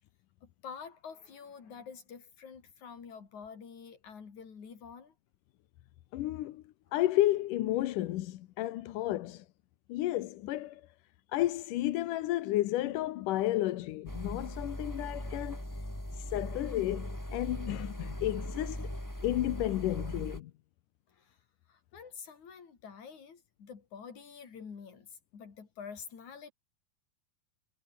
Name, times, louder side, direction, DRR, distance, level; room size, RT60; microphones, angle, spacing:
voice 1, 0.4-5.1 21.1-21.4 21.7-26.5, left 6 dB, 50° left, 4.9 m, -48 dB
voice 2, 6.1-6.6 6.9-9.5 9.9-10.9 11.3-15.6 16.1-18.9 19.2-20.5, left 15 dB, 70° left, 2.3 m, -32 dB
sound 1, 14.1-20.4, equal, 5° left, 5.4 m, -39 dB
omnidirectional pair, 4.4 m